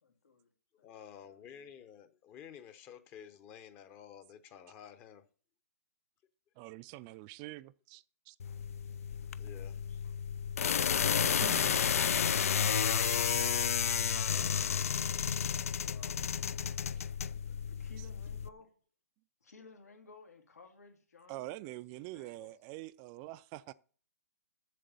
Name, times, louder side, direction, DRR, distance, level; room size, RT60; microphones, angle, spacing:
voice 1, 0.0-0.5 1.1-1.8 9.9-10.0 15.4-16.8 17.4-18.7 19.4-21.7 22.1-22.5, left 4 dB, 85° left, 2.3 m, -57 dB
voice 2, 0.8-5.2 9.4-9.8, left 8 dB, 25° left, 0.8 m, -52 dB
voice 3, 6.6-8.4 11.4-11.9 12.9-13.7 17.0-17.1 18.0-18.1 21.3-23.7, right 17 dB, 30° right, 0.4 m, -46 dB
sound 1, 8.4-18.5, left 7 dB, 70° left, 0.5 m, -31 dB
7.6 x 7.2 x 6.9 m
hypercardioid pair, 140°, 8 cm